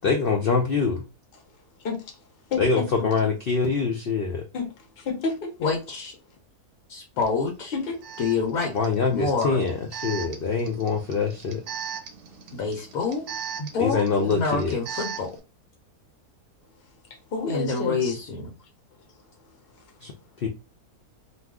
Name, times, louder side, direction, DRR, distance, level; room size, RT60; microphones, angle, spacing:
voice 1, 0.0-1.0 2.6-4.4 8.7-9.8 10.0-11.6 13.8-15.0 20.0-20.1 20.4-20.5, left 4 dB, 90° left, 0.5 m, -24 dB
voice 2, 1.8-2.2 2.5-2.9 4.5-5.5 7.7-8.0 17.3-18.1, left 4 dB, 45° left, 1.0 m, -30 dB
voice 3, 5.6-6.1 6.9-7.7 8.2-8.7 9.1-9.6 12.5-13.2 13.6-15.3 17.5-18.5, left 4 dB, 70° left, 1.2 m, -27 dB
Alarm, 7.2-7.3 8.0-15.4, right 8 dB, 85° right, 1.2 m, -38 dB
2.6 x 2.3 x 3.4 m
omnidirectional pair, 1.6 m